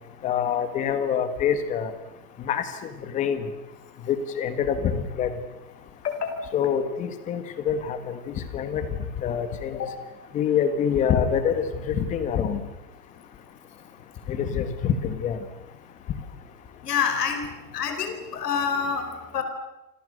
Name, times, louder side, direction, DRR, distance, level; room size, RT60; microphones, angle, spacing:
voice 1, 0.2-1.9 2.4-3.4 4.1-5.3 6.5-8.8 9.2-9.8 10.3-12.6 14.3-15.4, left 8 dB, 15° left, 11 dB, 1.7 m, -26 dB
voice 2, 6.0-6.3 9.7-9.9 16.8-17.4 17.7-19.4, left 7 dB, 70° left, 7 dB, 4.8 m, -27 dB
30.0 x 26.0 x 6.7 m, 0.96 s
supercardioid pair, 170°, 48 cm